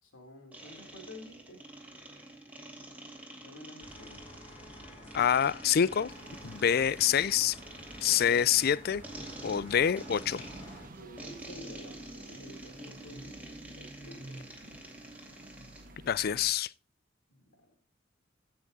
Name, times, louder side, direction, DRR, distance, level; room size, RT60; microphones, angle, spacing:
voice 1, 0.0-1.7 3.4-4.2 10.9-14.5 17.3-17.8, left 1 dB, 85° left, 3.5 m, -51 dB
sound 1, 0.5-15.9, right 1 dB, 10° right, 2.2 m, -48 dB
sound 2, 3.8-10.9, left 1 dB, 30° left, 5.9 m, -51 dB
voice 2, 5.1-6.1 6.4-7.6 8.0-9.0 9.4-10.4 16.1-16.7, left 8 dB, 50° left, 0.4 m, -26 dB
sound 3, 6.1-16.5, right 1 dB, 45° right, 1.4 m, -51 dB
16.0 x 6.0 x 4.1 m
head